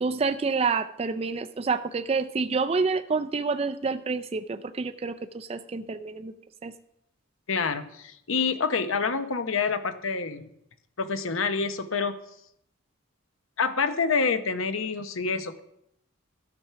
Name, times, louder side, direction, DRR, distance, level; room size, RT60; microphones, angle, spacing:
voice 1, 0.0-6.3 6.6-6.7, right 4 dB, 30° right, 8 dB, 0.3 m, -28 dB
voice 2, 7.5-10.5 11.0-12.2 13.6-15.6, left 5 dB, 75° left, 10 dB, 0.8 m, -27 dB
12.5 x 6.0 x 5.7 m, 0.76 s
head